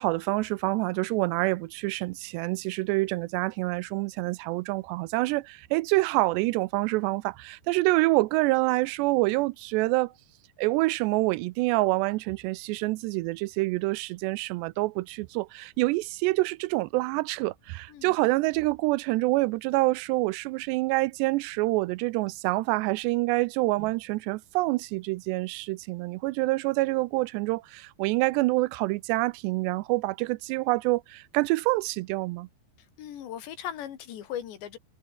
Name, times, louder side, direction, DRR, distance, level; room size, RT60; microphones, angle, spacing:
voice 1, 0.0-10.1 10.6-32.5, right 22 dB, 85° right, 2.8 m, -27 dB
voice 2, 33.0-34.8, left 10 dB, 85° left, 4.7 m, -38 dB
omnidirectional pair, 4.9 m